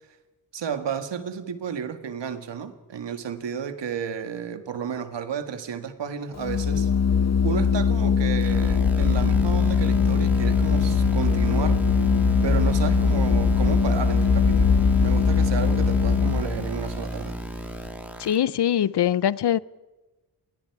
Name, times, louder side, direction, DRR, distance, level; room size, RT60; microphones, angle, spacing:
voice 1, 0.5-6.9 7.4-11.8 12.4-17.4, right 7 dB, 90° right, 1.9 m, -32 dB
Organ, 6.4-16.7, left 6 dB, 40° left, 0.8 m, -21 dB
sound 1, 8.4-18.4, right 1 dB, 5° right, 3.2 m, -30 dB
voice 2, 18.2-19.6, left 10 dB, 70° left, 0.7 m, -22 dB
28.0 x 22.0 x 4.8 m
wide cardioid pair, 90°, 42 cm